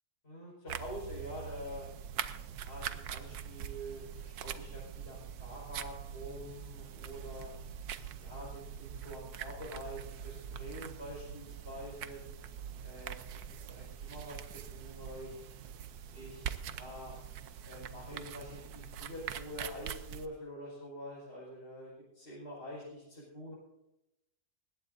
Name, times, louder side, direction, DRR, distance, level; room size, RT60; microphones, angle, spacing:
voice 1, 0.2-1.9 2.5-7.5 8.2-12.2 12.8-13.3 13.6-15.4 16.1-17.1 17.7-23.5, equal, 35° left, -7 dB, 5.4 m, -46 dB
sound 1, 0.7-20.3, right 8 dB, 70° right, 1.3 m, -43 dB
20.0 x 17.0 x 2.7 m, 0.88 s
omnidirectional pair, 1.8 m